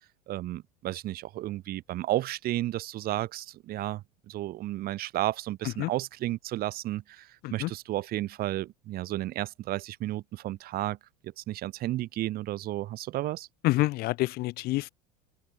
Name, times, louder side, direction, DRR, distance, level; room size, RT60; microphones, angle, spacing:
voice 1, 0.3-11.0 11.2-13.5, right 15 dB, 50° right, 6.8 m, -33 dB
voice 2, 13.6-14.9, left 19 dB, 55° left, 0.9 m, -27 dB
open air
supercardioid pair, 110°, 19 cm